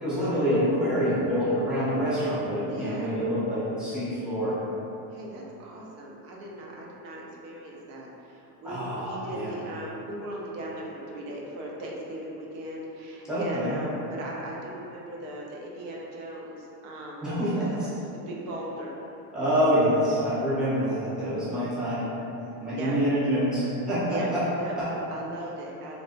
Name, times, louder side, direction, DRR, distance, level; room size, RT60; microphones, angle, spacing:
voice 1, 0.0-4.5 8.6-9.5 13.3-13.7 17.2-17.6 19.3-22.1 22.6-24.4 24.8-24.9, equal, ahead, -13 dB, 0.7 m, -26 dB
voice 2, 2.6-3.2 5.1-17.7 18.1-19.0 22.8-22.9 24.1-24.3 24.6-26.0, right 1 dB, 85° right, -3 dB, 0.7 m, -38 dB
3.4 x 2.5 x 2.5 m, 2.9 s
cardioid pair, 155°, 45 cm